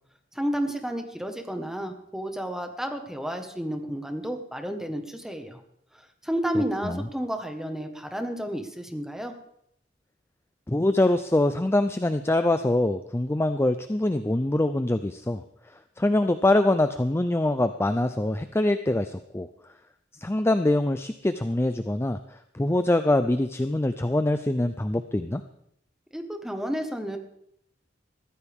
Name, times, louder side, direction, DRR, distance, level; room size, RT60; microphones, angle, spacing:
voice 1, 0.3-5.6 6.2-9.3 26.1-27.2, equal, 5° right, 5 dB, 1.5 m, -31 dB
voice 2, 10.7-15.4 16.0-19.5 20.2-22.2 22.5-25.4, left 1 dB, 15° left, 10 dB, 0.5 m, -24 dB
21.5 x 14.5 x 3.6 m, 0.72 s
head